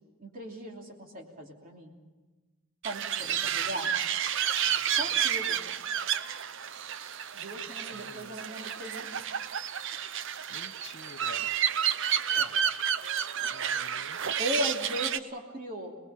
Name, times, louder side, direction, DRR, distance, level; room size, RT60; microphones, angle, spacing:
voice 1, 0.2-1.9 2.8-3.9 5.0-5.6 7.3-9.3 12.3-12.5 14.4-16.0, equal, 40° right, 1 dB, 3.0 m, -37 dB
sound 1, 2.8-15.2, right 9 dB, 55° right, 0.7 m, -30 dB
voice 2, 3.2-3.7 4.6-5.0 7.9-8.4 10.5-11.6 13.5-14.2, left 4 dB, 50° left, 9 dB, 0.8 m, -50 dB
27.0 x 20.0 x 5.8 m, 1.2 s
head